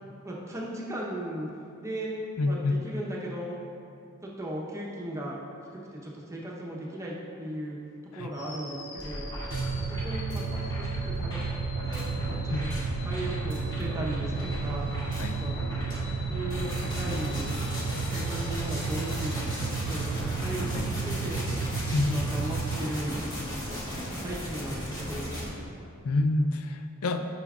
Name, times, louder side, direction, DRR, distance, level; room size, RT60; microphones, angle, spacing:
voice 1, 0.2-1.5 1.8-2.2 2.5-3.6 4.2-5.4 5.7-7.8 8.1-9.3 9.8-10.4 10.8-11.4 11.8-12.7 13.0-14.9 15.4-15.6 16.3-17.5 18.1-19.3 19.9-21.4 22.0-23.2 24.2-25.3, right 1 dB, 15° right, -4 dB, 0.9 m, -36 dB
voice 2, 2.4-2.8 8.1-8.3 12.5-12.6 15.2-15.4 20.7-20.9 21.9-22.2 26.0-27.3, left 2 dB, 80° left, 7 dB, 0.4 m, -27 dB
sound 1, 8.3-20.4, left 1 dB, 55° left, 1.0 m, -45 dB
sound 2, 9.0-25.5, equal, 20° left, 1.7 m, -36 dB
sound 3, 9.5-22.8, right 5 dB, 85° right, 0.5 m, -33 dB
10.5 x 5.8 x 2.5 m, 2.5 s
head